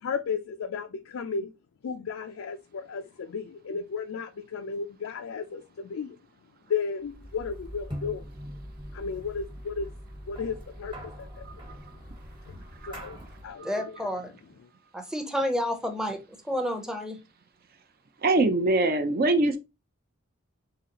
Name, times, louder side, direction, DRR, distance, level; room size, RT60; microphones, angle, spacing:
voice 1, 0.0-1.5 1.8-6.2 6.7-8.2 8.9-9.9 10.3-11.5 12.5-12.6 12.9-14.0, left 5 dB, 85° left, 0.4 m, -34 dB
sound 1, 7.1-13.6, equal, 25° right, 1.2 m, -42 dB
voice 2, 13.6-14.3 14.9-16.2 16.5-17.2, equal, 5° right, 0.6 m, -30 dB
voice 3, 18.2-19.6, right 2 dB, 50° right, 0.6 m, -23 dB
3.9 x 3.2 x 2.8 m
head